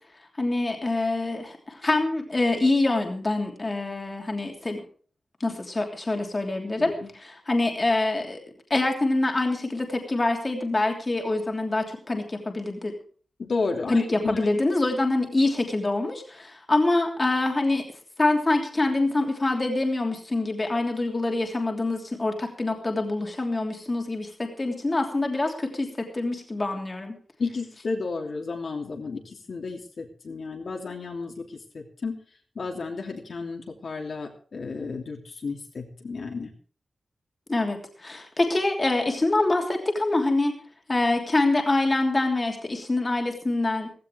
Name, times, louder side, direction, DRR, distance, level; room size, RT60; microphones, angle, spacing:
voice 1, 0.4-4.8 5.4-8.4 8.7-12.9 13.9-17.8 18.2-27.2 37.5-40.6 40.9-43.9, left 2 dB, 25° left, 2 dB, 3.0 m, -25 dB
voice 2, 6.8-7.1 13.4-14.4 27.4-32.1 32.5-36.5, left 4 dB, 60° left, 1 dB, 3.0 m, -32 dB
16.5 x 16.0 x 3.5 m, 0.41 s
wide cardioid pair, 155°, 0 cm